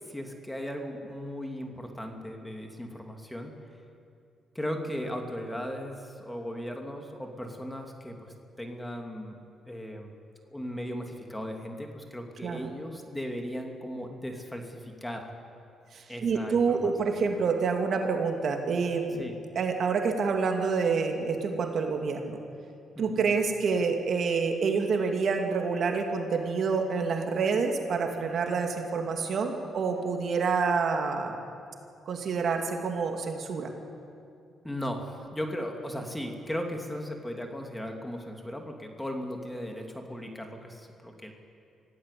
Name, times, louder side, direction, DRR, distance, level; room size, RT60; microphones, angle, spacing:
voice 1, 0.1-3.5 4.5-9.4 9.7-10.1 10.4-15.3 16.1-16.9 17.2-17.3 19.2-19.3 22.9-23.3 34.6-41.3, equal, 10° left, 3 dB, 2.8 m, -37 dB
voice 2, 15.9-19.3 19.6-22.4 23.0-31.4 32.1-33.7, right 5 dB, 55° right, 3 dB, 2.6 m, -27 dB
25.0 x 16.0 x 8.5 m, 2.5 s
cardioid pair, 90°, 0 cm